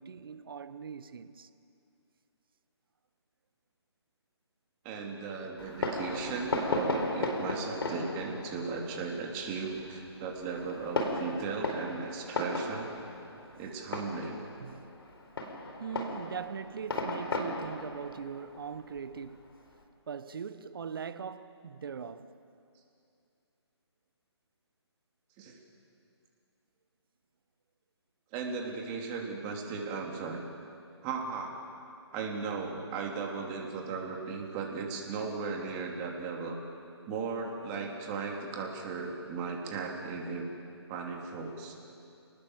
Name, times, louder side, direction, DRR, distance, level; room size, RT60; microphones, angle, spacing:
voice 1, 0.0-1.5 13.2-13.5 14.6-14.9 15.8-19.5 20.1-22.4, right 6 dB, 50° right, 1.2 m, -41 dB
voice 2, 4.8-12.9 13.6-14.4 25.4-25.6 28.3-30.4 31.0-31.6 32.1-36.6 37.0-40.5 40.9-41.7, right 4 dB, 20° right, 3.1 m, -36 dB
Fireworks, 5.6-19.7, left 2 dB, 60° left, 4.4 m, -36 dB
29.0 x 19.5 x 7.7 m
figure-of-eight pair, 150°, 15 cm